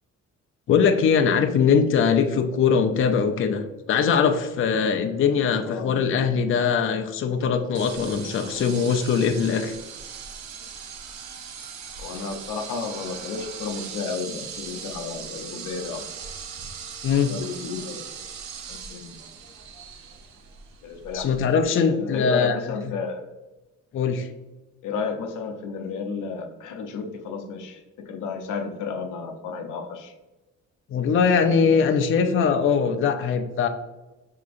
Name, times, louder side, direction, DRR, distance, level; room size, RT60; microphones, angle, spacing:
voice 1, 0.7-9.7 17.0-17.3 21.1-22.7 23.9-24.3 30.9-33.7, left 6 dB, 45° left, 6 dB, 0.5 m, -21 dB
voice 2, 5.6-6.0 12.0-16.1 17.2-18.1 18.7-19.2 20.8-23.3 24.8-30.1, left 5 dB, 80° left, 5 dB, 0.6 m, -32 dB
sound 1, 7.7-21.6, right 6 dB, 65° right, 0.7 m, -39 dB
5.9 x 2.8 x 2.5 m, 1.1 s
cardioid pair, 90°, 30 cm